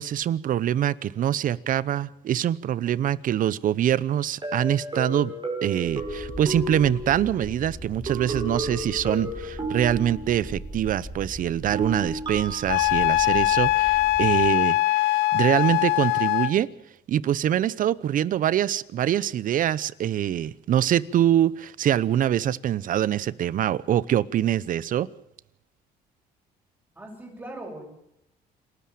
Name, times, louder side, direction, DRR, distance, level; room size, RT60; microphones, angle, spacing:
voice 1, 0.0-5.3 5.6-16.7 17.1-25.1, right 11 dB, 55° right, 20 dB, 0.8 m, -24 dB
sound 1, 4.4-7.6 8.1-10.6 11.7-12.8, right 1 dB, 25° right, 5.8 m, -33 dB
sound 2, 5.8-14.5, equal, 5° left, 3.7 m, -40 dB
Wind instrument woodwind instrument, 12.7-16.6, left 18 dB, 85° left, 0.7 m, -22 dB
voice 2, 26.9-27.9, right 1 dB, 10° right, 0 dB, 7.9 m, -39 dB
28.0 x 13.0 x 7.6 m, 0.82 s
cardioid pair, 110°, 17 cm